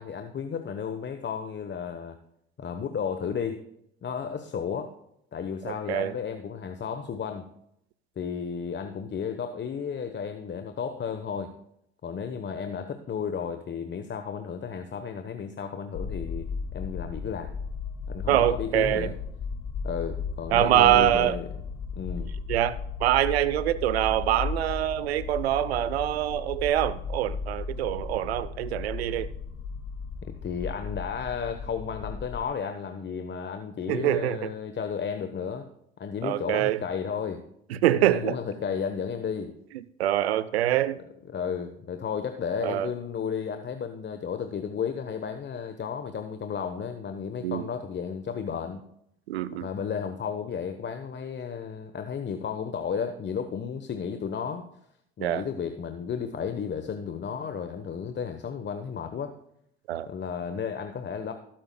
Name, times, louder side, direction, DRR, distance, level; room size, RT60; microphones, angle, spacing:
voice 1, 0.0-2.2 2.6-3.6 4.0-4.9 5.3-7.5 8.2-11.5 12.0-17.5 18.1-19.1 19.8-21.5 22.0-22.3 30.2-35.7 36.0-37.4 38.0-39.5 41.3-48.8 49.5-54.6 55.2-59.3 60.1-61.3, left 7 dB, 35° left, 1.1 m, -33 dB
voice 2, 5.7-6.1 18.3-19.1 20.5-21.4 22.5-29.3 33.9-34.4 36.2-36.8 37.7-38.4 40.0-41.0 42.6-42.9 47.4-47.7 49.3-49.7 55.2-55.4 59.9-60.1, right 12 dB, 85° right, 0.6 m, -24 dB
sound 1, 15.9-32.5, left 5 dB, 55° left, 1.5 m, -36 dB
17.0 x 8.9 x 2.3 m
hypercardioid pair, 60°, 31 cm